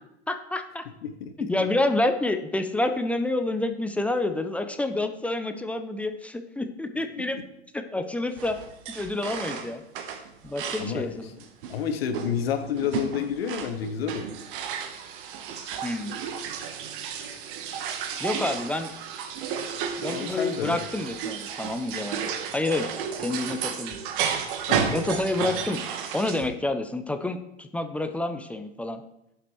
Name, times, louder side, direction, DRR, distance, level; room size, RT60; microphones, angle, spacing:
voice 1, 0.3-0.9 1.4-7.4 7.7-8.6 8.9-9.8 10.4-11.3 15.8-16.2 18.2-18.9 20.0-24.0 24.9-25.8 26.1-29.0, left 2 dB, 5° left, 7 dB, 0.3 m, -28 dB
voice 2, 1.0-1.5 10.8-11.2 11.7-14.3 20.0-20.8 24.7-25.0, left 7 dB, 65° left, 7 dB, 0.9 m, -30 dB
sound 1, 8.4-11.0 11.4-26.5, right 7 dB, 50° right, 1.1 m, -33 dB
14.5 x 5.8 x 3.1 m, 0.85 s
figure-of-eight pair, 95°, 33 cm